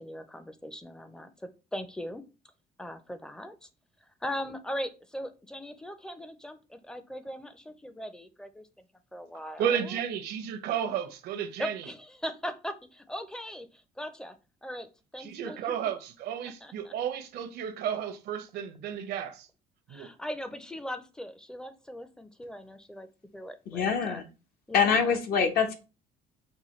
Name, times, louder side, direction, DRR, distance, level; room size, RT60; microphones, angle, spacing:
voice 1, 0.0-2.2 2.8-3.7 4.2-8.7 9.1-10.0 11.6-14.4 14.6-14.9 15.1-15.9 16.4-16.9 19.9-23.1 23.3-24.2 24.7-25.2, equal, 5° left, 0.5 m, -39 dB
voice 2, 9.6-11.8 15.2-19.5 19.9-20.1, right 8 dB, 75° right, 0.7 m, -32 dB
voice 3, 23.7-24.2 24.7-25.7, left 6 dB, 65° left, 0.9 m, -25 dB
5.5 x 2.2 x 3.1 m
cardioid pair, 110°, 17 cm